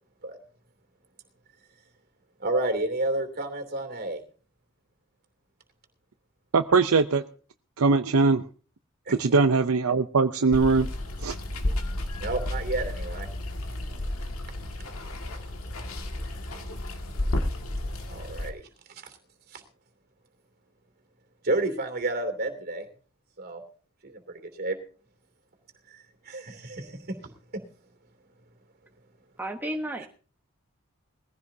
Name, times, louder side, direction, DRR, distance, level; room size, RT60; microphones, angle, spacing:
voice 1, 2.4-4.2 9.1-9.2 12.2-13.3 13.7-13.9 18.1-18.7 19.0-19.1 19.5-19.6 21.4-22.8 23.4-23.6 24.0-24.8 25.9-26.0 26.2-27.2, right 2 dB, 50° right, 2.8 m, -30 dB
voice 2, 6.5-7.2 7.8-8.4 9.1-10.9 11.2-11.4, right 4 dB, 75° right, 0.6 m, -21 dB
Water, 10.5-18.5, left 1 dB, 75° left, 2.0 m, -32 dB
voice 3, 29.4-30.1, right 1 dB, 10° right, 1.1 m, -32 dB
20.5 x 15.5 x 2.8 m
head